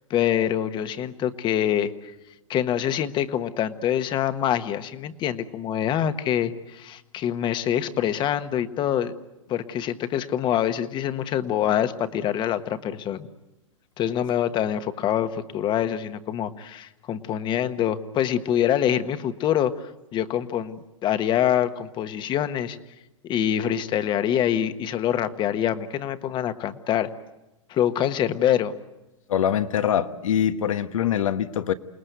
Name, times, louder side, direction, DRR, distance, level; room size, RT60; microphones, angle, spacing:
voice 1, 0.1-2.1 2.5-9.1 9.5-13.3 14.0-22.8 23.2-27.1 27.7-28.7, left 10 dB, 25° left, 1.3 m, -25 dB
voice 2, 29.3-31.7, left 9 dB, 75° left, 1.3 m, -23 dB
28.5 x 19.5 x 8.1 m
hypercardioid pair, 130°, 17 cm